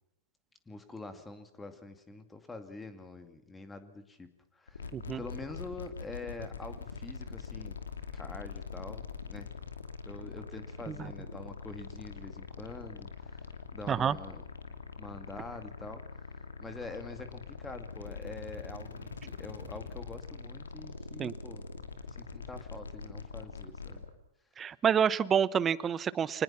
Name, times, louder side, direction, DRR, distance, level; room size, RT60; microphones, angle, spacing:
voice 1, 0.7-4.9 5.2-7.8 8.1-9.7 10.1-14.4 15.0-16.0 16.6-21.6 22.2-24.0, left 3 dB, 10° left, 9 dB, 2.4 m, -45 dB
sound 1, 4.7-24.1, left 5 dB, 80° left, 2.6 m, -43 dB
voice 2, 24.6-26.4, right 8 dB, 20° right, 20 dB, 0.9 m, -28 dB
26.0 x 20.0 x 5.8 m, 0.87 s
figure-of-eight pair, 105°, 0 cm